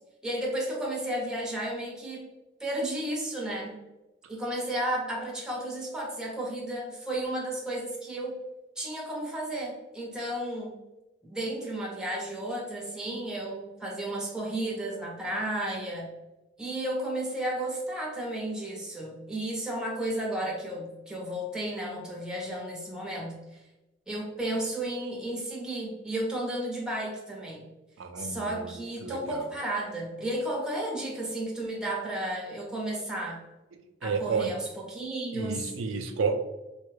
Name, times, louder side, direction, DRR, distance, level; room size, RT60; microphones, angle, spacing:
voice 1, 0.2-2.3 2.6-3.8 4.3-8.4 8.8-10.8 11.2-16.1 16.6-23.4 24.1-27.6 28.2-33.4 34.0-35.7, right 1 dB, 5° right, -2 dB, 0.7 m, -33 dB
voice 2, 28.0-29.5 34.0-34.5 35.3-36.3, right 5 dB, 85° right, 5 dB, 0.4 m, -31 dB
3.3 x 2.3 x 3.2 m, 1.0 s
head